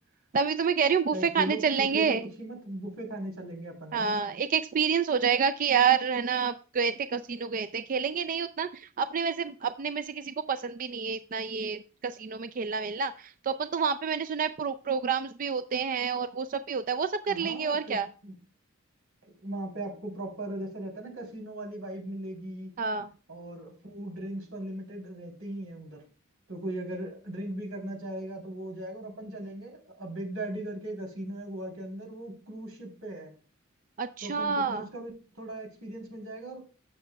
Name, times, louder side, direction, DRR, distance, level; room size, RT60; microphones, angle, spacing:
voice 1, 0.3-2.2 3.9-18.1 22.8-23.1 34.0-34.8, right 6 dB, 40° right, 12 dB, 0.4 m, -28 dB
voice 2, 1.1-4.1 17.3-18.3 19.2-22.7 23.3-26.0 26.5-33.3 34.2-36.6, right 1 dB, 90° right, 2 dB, 3.4 m, -38 dB
16.5 x 6.5 x 2.3 m, 0.37 s
head